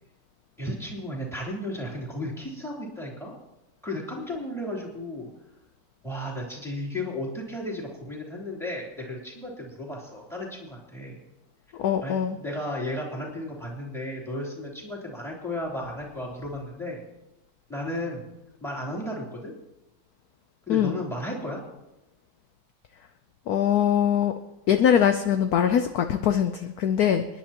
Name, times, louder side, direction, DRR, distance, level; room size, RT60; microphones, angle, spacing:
voice 1, 0.6-3.3 3.8-5.3 6.0-11.2 12.0-17.0 17.7-18.2 18.6-19.5 20.7-21.6, left 1 dB, ahead, -3 dB, 3.1 m, -34 dB
voice 2, 11.8-12.4 20.7-20.9 23.5-24.3 24.7-27.3, left 9 dB, 70° left, 7 dB, 0.9 m, -22 dB
28.5 x 10.5 x 3.0 m, 0.93 s
omnidirectional pair, 2.2 m